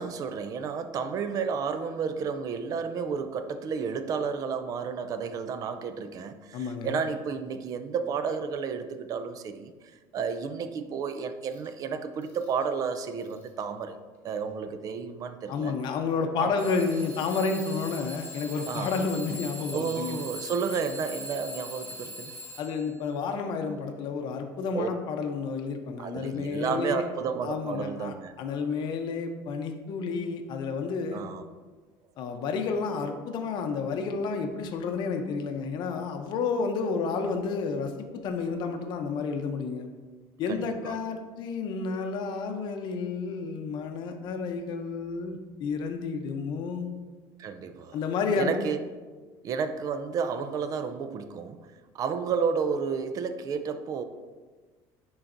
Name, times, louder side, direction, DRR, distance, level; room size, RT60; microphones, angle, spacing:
voice 1, 0.0-9.7 10.1-14.0 14.2-15.8 16.4-16.6 18.7-18.9 19.7-22.3 24.7-24.9 26.0-28.3 31.1-31.4 40.5-41.0 47.4-48.0 48.4-48.8 49.4-51.6 51.9-54.0, right 6 dB, 40° right, 0.4 m, -31 dB
voice 2, 6.5-7.0 15.5-20.2 22.6-27.0 27.4-31.2 32.2-39.9 40.4-46.9 47.9-48.6, left 4 dB, 50° left, 0.7 m, -31 dB
Alarm / Clock, 11.5-11.7 12.2-12.6 13.2-13.6 14.5-14.6 16.6-23.0, equal, 15° left, 1.8 m, -42 dB
10.0 x 3.9 x 2.6 m
cardioid pair, 145°, 10 cm